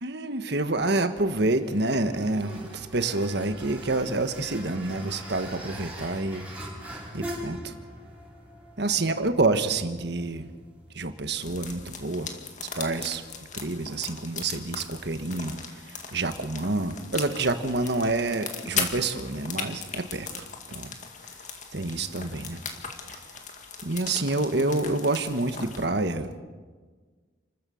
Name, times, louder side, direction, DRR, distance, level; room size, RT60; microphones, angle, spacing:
voice 1, 0.0-6.5 7.1-7.7 8.8-10.5 10.9-12.3 12.8-13.2 13.5-20.9 21.7-22.6 23.1-23.2 23.8-26.4, right 2 dB, 60° right, 9 dB, 1.4 m, -28 dB
sound 1, 0.7-14.0, right 1 dB, 5° right, 5.3 m, -44 dB
sound 2, 11.4-25.9, left 6 dB, 40° left, 2.2 m, -38 dB
29.5 x 14.0 x 7.1 m, 1.5 s
head